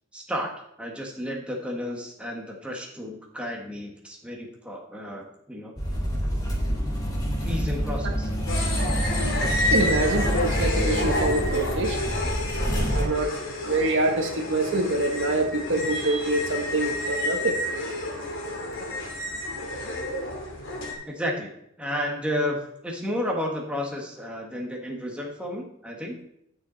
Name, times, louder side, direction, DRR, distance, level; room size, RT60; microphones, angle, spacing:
voice 1, 0.1-0.5 0.8-5.7 7.4-8.3 21.0-21.5 21.8-26.2, equal, 5° right, -1 dB, 1.5 m, -32 dB
sound 1, 5.8-13.0, equal, 20° left, 3.4 m, -27 dB
sound 2, 8.5-20.9, left 1 dB, 60° left, 2.8 m, -30 dB
voice 2, 9.7-12.0 12.9-13.3 13.6-17.6, right 2 dB, 55° right, 3 dB, 1.3 m, -25 dB
11.5 x 6.7 x 4.0 m, 0.76 s
head